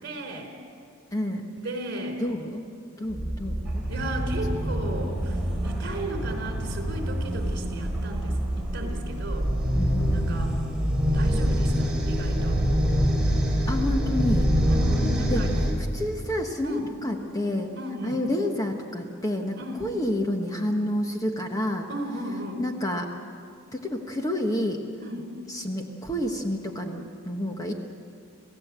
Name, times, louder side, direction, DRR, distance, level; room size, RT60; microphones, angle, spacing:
voice 1, 0.0-0.5 1.6-2.2 3.9-9.5 10.1-10.5 11.1-12.6 14.7-15.5 16.6-16.9 17.8-18.2 19.6-19.8 21.9-22.6 25.0-25.3, right 1 dB, 50° right, 4 dB, 3.7 m, -35 dB
voice 2, 1.1-1.5 2.2-2.6 3.0-3.8 4.5-4.9 9.7-10.5 13.7-14.5 15.3-15.5 15.9-17.7 18.0-21.9 22.6-23.1 23.7-24.8 25.5-27.7, left 1 dB, 15° left, 3 dB, 1.2 m, -29 dB
sound 1, 3.1-15.7, equal, 5° right, 3.9 m, -25 dB
27.5 x 16.5 x 8.2 m, 2.4 s
head